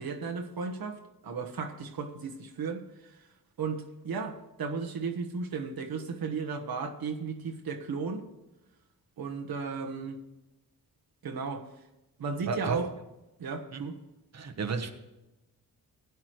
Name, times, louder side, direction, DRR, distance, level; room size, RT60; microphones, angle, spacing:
voice 1, 0.0-2.8 3.6-8.3 9.2-10.2 11.2-11.7 12.2-12.9 13.4-14.0, right 5 dB, 65° right, 1.3 m, -35 dB
voice 2, 12.4-12.8 13.7-13.9 14.3-14.9, right 4 dB, 45° right, 1.2 m, -32 dB
16.5 x 9.7 x 3.2 m
cardioid pair, 65°, 38 cm